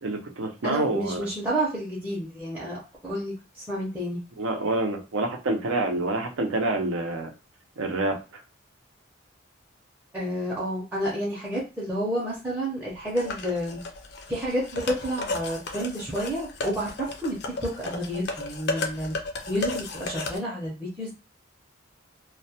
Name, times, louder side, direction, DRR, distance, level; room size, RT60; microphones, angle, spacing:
voice 1, 0.0-1.3 4.4-7.3 7.8-8.2, right 2 dB, 85° right, 3 dB, 0.6 m, -27 dB
voice 2, 0.6-4.2 10.1-13.8 14.3-17.4 17.6-19.2 19.5-21.1, equal, 10° right, -7 dB, 0.5 m, -30 dB
sound 1, 13.2-20.4, left 3 dB, 55° left, 0.4 m, -34 dB
2.2 x 2.1 x 2.7 m, 0.32 s
head